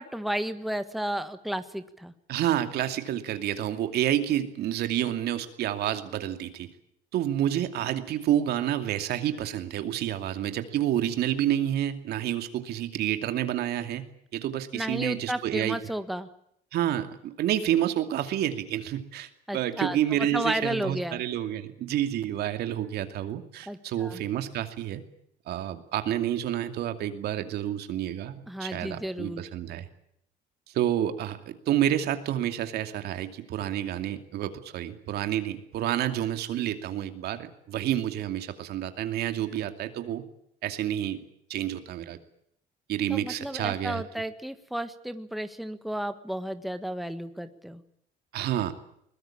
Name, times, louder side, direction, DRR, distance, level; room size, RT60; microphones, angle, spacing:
voice 1, 0.0-2.1 14.7-16.3 19.5-20.0 20.3-21.2 23.7-24.2 28.5-29.4 43.1-47.8, right 1 dB, ahead, 10 dB, 1.5 m, -33 dB
voice 2, 2.3-6.7 7.1-14.0 14.3-15.8 16.7-25.0 25.5-29.9 30.7-40.2 40.6-42.2 42.9-44.0 48.3-48.7, right 11 dB, 75° right, 8 dB, 2.6 m, -29 dB
22.0 x 20.5 x 8.7 m, 0.72 s
cardioid pair, 110°, 17 cm